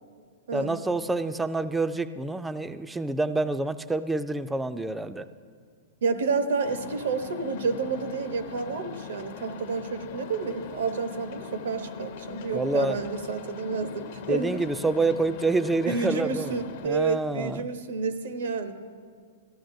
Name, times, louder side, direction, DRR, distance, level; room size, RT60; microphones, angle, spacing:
voice 1, 0.5-5.3 12.5-13.0 14.3-16.6 16.8-17.7, right 2 dB, 5° right, 12 dB, 0.3 m, -27 dB
voice 2, 6.0-14.5 15.8-18.7, right 4 dB, 80° right, 8 dB, 0.9 m, -30 dB
sound 1, 6.6-16.9, left 7 dB, 55° left, 0.6 m, -41 dB
14.0 x 13.5 x 2.6 m, 2.1 s
hypercardioid pair, 145°, 0 cm